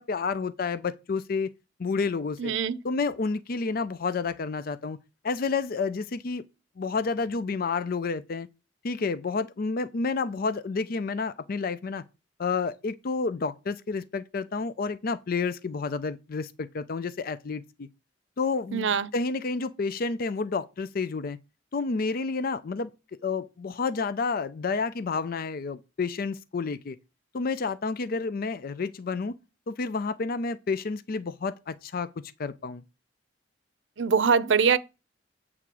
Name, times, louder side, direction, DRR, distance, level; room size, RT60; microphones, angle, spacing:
voice 1, 0.0-1.5 1.8-2.5 2.8-5.0 5.2-6.4 6.8-8.5 8.8-12.0 12.4-17.9 18.4-21.4 21.7-22.9 23.2-27.0 27.3-29.3 29.7-32.8, left 4 dB, 55° left, 0.5 m, -30 dB
voice 2, 2.4-2.8 18.7-19.1 34.0-34.8, right 6 dB, 75° right, 0.6 m, -23 dB
8.4 x 3.6 x 6.1 m
head